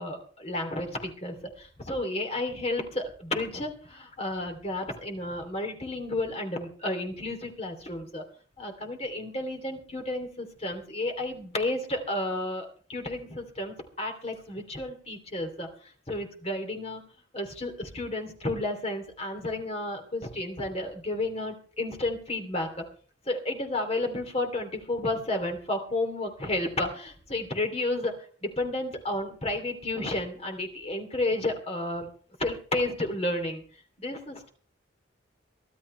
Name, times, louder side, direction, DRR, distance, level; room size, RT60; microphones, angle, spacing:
voice 1, 0.0-8.2 8.6-17.0 17.3-22.7 23.3-28.1 28.4-32.1 32.4-33.6 34.0-34.5, left 2 dB, 30° left, 5 dB, 2.8 m, -32 dB
23.5 x 12.5 x 3.3 m, 0.42 s
head